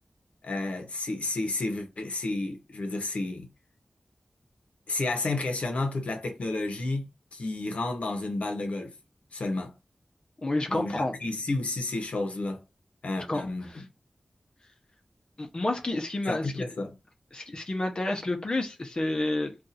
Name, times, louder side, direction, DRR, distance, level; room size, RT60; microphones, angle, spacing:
voice 1, 0.4-3.5 4.9-7.1 7.3-8.9 9.3-9.7 10.7-12.6 13.0-13.8 16.3-16.9, left 2 dB, 75° left, 0.8 m, -31 dB
voice 2, 10.4-11.1 13.3-13.8 15.4-16.5 17.3-19.5, left 2 dB, 45° left, 0.8 m, -30 dB
2.6 x 2.4 x 4.1 m
wide cardioid pair, 85°, 2 cm